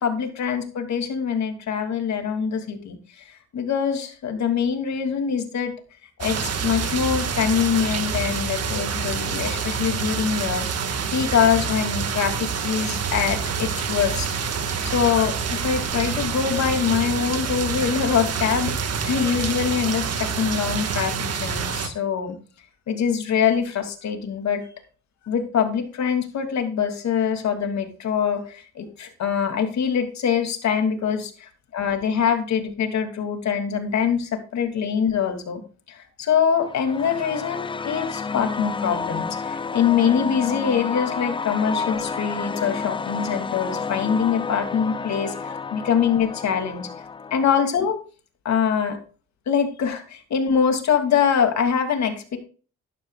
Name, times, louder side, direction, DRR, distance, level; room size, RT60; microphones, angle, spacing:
voice 1, 0.0-5.7 6.2-10.7 11.1-14.3 14.8-22.4 22.9-24.6 25.3-35.6 35.9-46.9 47.3-48.0 48.4-49.0 49.5-52.4, left 7 dB, 65° left, 5 dB, 2.7 m, -24 dB
sound 1, 6.2-21.9, right 6 dB, 55° right, 1.8 m, -27 dB
sound 2, 36.5-47.6, left 5 dB, 15° left, 0.4 m, -30 dB
12.0 x 12.0 x 2.4 m, 0.38 s
cardioid pair, 90°, 30 cm